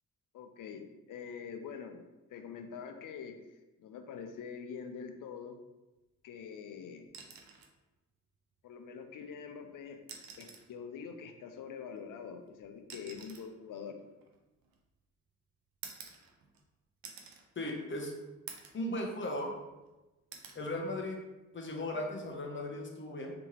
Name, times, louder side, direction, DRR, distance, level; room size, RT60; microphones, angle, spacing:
voice 1, 0.3-5.6 6.2-7.1 8.6-10.0 10.4-14.0, left 6 dB, 65° left, 6 dB, 0.6 m, -45 dB
sound 1, 7.1-7.8 9.2-9.3 10.0-10.8 11.9-15.0 15.8-16.7 17.0-17.5 17.9-18.0 18.5-18.9 19.3-19.9 20.3-20.6 22.1-22.3, right 6 dB, 75° right, 0.6 m, -50 dB
voice 2, 17.6-18.1 18.7-19.5 20.5-21.2 21.5-23.3, left 1 dB, 35° left, 1 dB, 0.8 m, -37 dB
3.5 x 2.9 x 2.9 m, 1.1 s
supercardioid pair, 60°, 35 cm